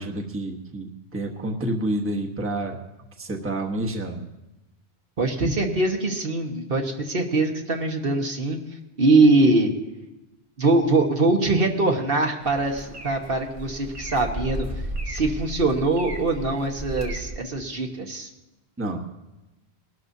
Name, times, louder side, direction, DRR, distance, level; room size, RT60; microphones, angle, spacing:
voice 1, 0.0-2.8 3.2-4.3 18.8-19.0, right 1 dB, 10° right, 1 dB, 1.1 m, -29 dB
voice 2, 5.2-8.6 9.0-9.7 10.6-14.7 15.1-18.3, right 2 dB, 60° right, 2 dB, 1.5 m, -22 dB
sound 1, 12.4-17.4, right 1 dB, 30° right, 1.3 m, -34 dB
21.0 x 12.5 x 2.7 m, 0.99 s
omnidirectional pair, 1.1 m